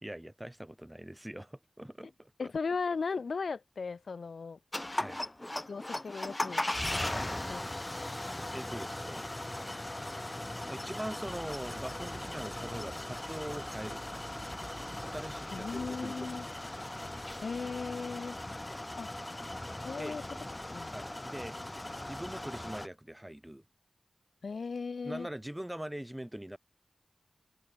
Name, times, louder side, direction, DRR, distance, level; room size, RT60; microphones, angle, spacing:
voice 1, 0.0-2.5 5.0-5.2 7.1-7.3 8.5-9.3 10.6-14.2 15.0-16.4 20.0-20.2 20.9-21.6 22.0-23.6 25.0-26.6, right 1 dB, 15° right, 0.7 m, -42 dB
voice 2, 2.4-4.6 5.7-6.7 7.5-7.6 8.0-8.2 15.5-16.5 17.4-18.4 19.0-19.1 19.8-20.2 20.7-20.9 24.4-25.3, left 4 dB, 85° left, 0.5 m, -37 dB
sound 1, 4.7-22.9, left 1 dB, 25° left, 0.4 m, -38 dB
sound 2, 11.2-20.0, right 2 dB, 35° right, 1.2 m, -54 dB
cardioid pair, 45°, 0 cm